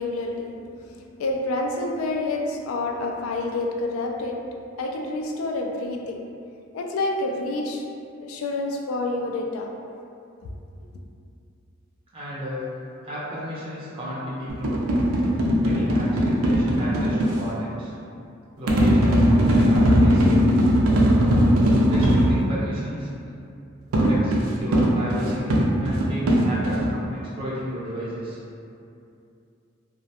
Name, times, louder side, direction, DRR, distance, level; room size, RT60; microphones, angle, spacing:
voice 1, 0.0-6.3 6.7-7.9 8.2-9.7 10.4-10.5, left 2 dB, 85° left, 2 dB, 0.3 m, -28 dB
voice 2, 12.1-12.6 13.0-14.8 15.6-17.9 18.6-20.6 21.9-23.1 23.9-28.4, equal, 25° right, -8 dB, 0.4 m, -33 dB
sound 1, 14.5-17.4 18.7-22.4 23.9-26.9, equal, 90° right, 0.4 m, -19 dB
2.3 x 2.1 x 2.7 m, 2.5 s
head